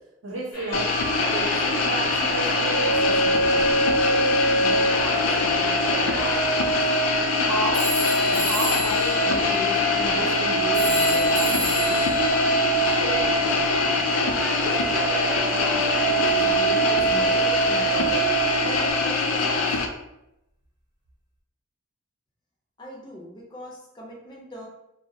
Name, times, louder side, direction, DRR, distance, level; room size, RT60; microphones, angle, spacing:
voice 1, 0.2-0.9 1.3-6.8 7.4-12.0 13.0-14.1 14.5-19.7, right 1 dB, 65° right, -3 dB, 0.7 m, -34 dB
sound 1, 0.5-18.9, right 3 dB, 65° left, 0.8 m, -25 dB
sound 2, 0.7-19.9, left 4 dB, 85° left, 0.3 m, -24 dB
sound 3, 7.7-13.9, left 1 dB, 25° right, 0.7 m, -33 dB
voice 2, 22.8-24.7, equal, 20° left, -4 dB, 0.5 m, -42 dB
2.3 x 2.0 x 2.7 m, 0.85 s
head